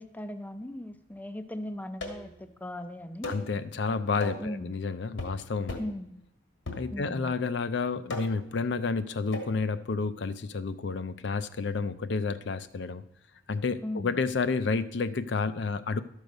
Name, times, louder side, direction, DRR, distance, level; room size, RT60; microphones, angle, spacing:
voice 1, 0.0-3.3 4.4-4.7 5.8-6.1 6.9-7.3 13.8-14.1, left 1 dB, 10° left, 9 dB, 0.4 m, -38 dB
sound 1, 2.0-2.4 3.2-3.5 4.2-4.5 5.2-5.4 5.7-6.0 6.7-7.2 8.1-8.5 9.3-9.6, left 2 dB, 80° left, 1.7 m, -37 dB
voice 2, 3.2-5.8 6.7-13.0 13.5-16.0, left 4 dB, 60° left, 12 dB, 0.5 m, -30 dB
12.0 x 6.5 x 5.2 m, 0.76 s
head